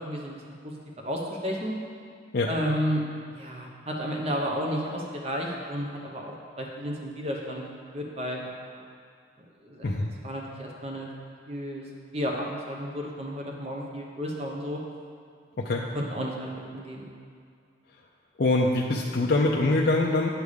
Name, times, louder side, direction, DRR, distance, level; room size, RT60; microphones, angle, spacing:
voice 1, 0.0-1.7 2.5-3.0 3.3-7.6 7.9-8.8 9.6-9.9 10.2-11.1 11.5-14.8 15.6-17.1, equal, 30° right, -1 dB, 0.9 m, -32 dB
voice 2, 18.4-20.3, left 2 dB, 50° left, -2 dB, 0.5 m, -24 dB
9.7 x 3.5 x 6.4 m, 2.3 s
head